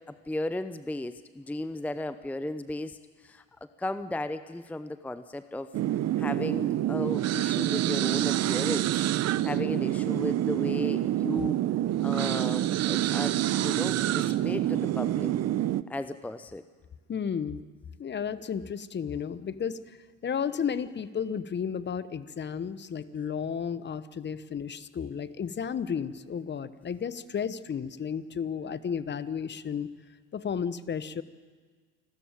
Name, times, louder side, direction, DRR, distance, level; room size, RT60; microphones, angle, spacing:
voice 1, 0.0-3.4 3.8-5.7 6.2-9.0 9.4-11.6 12.0-15.3 15.9-16.6, left 1 dB, 5° left, 12 dB, 0.7 m, -35 dB
sound 1, 5.7-15.8, right 13 dB, 45° right, 0.8 m, -27 dB
voice 2, 17.1-17.6 18.0-20.0 20.2-29.9 30.3-31.2, left 7 dB, 30° left, 15 dB, 1.0 m, -33 dB
28.0 x 13.5 x 9.0 m, 1.5 s
hypercardioid pair, 75°, 38 cm